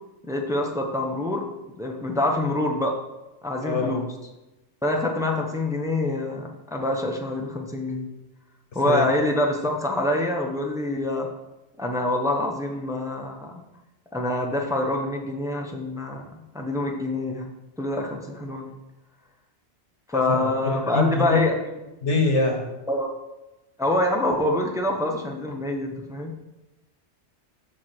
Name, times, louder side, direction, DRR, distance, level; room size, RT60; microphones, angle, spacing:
voice 1, 0.3-1.5 1.8-3.0 3.4-4.0 4.8-8.1 8.7-11.3 11.8-13.5 14.1-16.3 16.5-17.5 17.8-18.7 20.1-21.5 22.9-23.1 23.8-26.3, left 1 dB, 5° right, 1 dB, 0.9 m, -26 dB
voice 2, 3.6-4.0 8.9-9.1 20.1-21.4 22.0-22.6, left 3 dB, 80° left, 3 dB, 1.8 m, -24 dB
14.0 x 4.8 x 4.5 m, 1.0 s
omnidirectional pair, 1.2 m